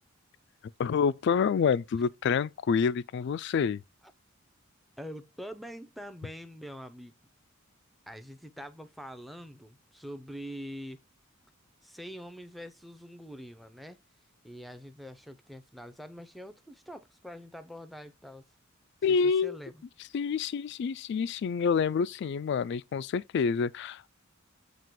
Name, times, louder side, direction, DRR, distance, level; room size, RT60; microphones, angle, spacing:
voice 1, 0.8-3.8 19.0-19.6 20.1-24.1, left 6 dB, 55° left, 0.3 m, -27 dB
voice 2, 5.0-7.1 8.1-11.0 11.8-14.0 14.4-18.4 19.1-19.8, equal, ahead, 0.5 m, -44 dB
7.5 x 2.9 x 4.5 m
head